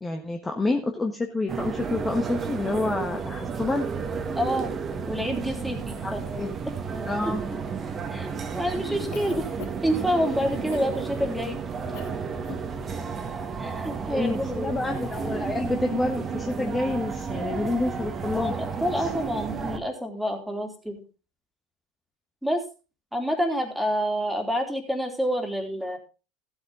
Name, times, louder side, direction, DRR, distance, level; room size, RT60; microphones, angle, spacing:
voice 1, 0.0-3.9 6.0-6.5 7.0-7.4 14.1-18.5 19.0-19.1, left 2 dB, 15° left, 3 dB, 1.3 m, -28 dB
sound 1, 1.5-19.8, right 5 dB, 30° right, 1.6 m, -32 dB
voice 2, 4.3-4.7 5.1-6.5 8.1-9.4 9.8-11.6 13.6-14.8 18.3-21.0 22.4-22.6 23.1-26.0, equal, ahead, 3 dB, 3.1 m, -28 dB
Cough, 9.1-10.0 10.7-10.9 11.9-12.2 12.4-12.7, left 9 dB, 60° left, 1.3 m, -41 dB
15.0 x 8.0 x 3.8 m, 0.32 s
hypercardioid pair, 80°, 0 cm